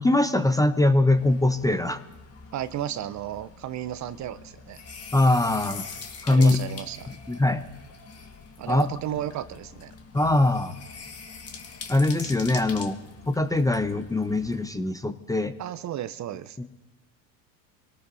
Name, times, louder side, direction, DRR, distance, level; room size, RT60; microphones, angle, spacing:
voice 1, 0.0-2.0 5.1-5.8 6.2-6.6 7.1-7.6 8.7-8.9 10.1-10.7 11.9-13.0 13.3-15.5 16.6-16.7, left 2 dB, 5° left, 11 dB, 0.6 m, -22 dB
sound 1, 1.2-14.7, left 5 dB, 30° left, 1.6 m, -43 dB
voice 2, 2.5-4.8 6.3-7.1 8.6-9.9 15.6-16.6, right 11 dB, 35° right, 13 dB, 0.6 m, -33 dB
25.0 x 18.0 x 2.7 m, 1.2 s
hypercardioid pair, 80°, 49 cm